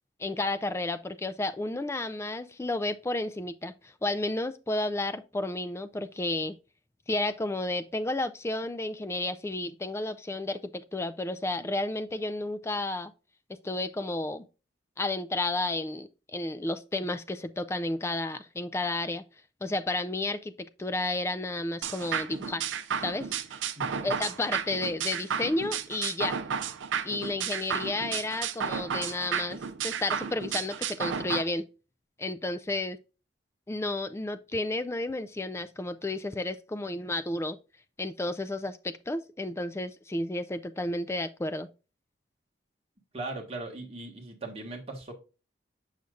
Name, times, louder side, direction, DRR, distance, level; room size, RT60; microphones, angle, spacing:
voice 1, 0.2-6.5 7.1-13.1 13.5-14.4 15.0-19.2 19.6-22.6 23.0-23.3 24.0-26.4 27.0-29.6 29.8-31.7 32.2-33.0 33.7-37.6 38.0-41.7, left 2 dB, 15° left, 0.3 m, -32 dB
sound 1, 21.8-31.4, right 7 dB, 90° right, 0.5 m, -33 dB
voice 2, 23.8-24.1 43.1-45.1, right 2 dB, 30° right, 1.5 m, -39 dB
6.9 x 6.4 x 2.4 m
head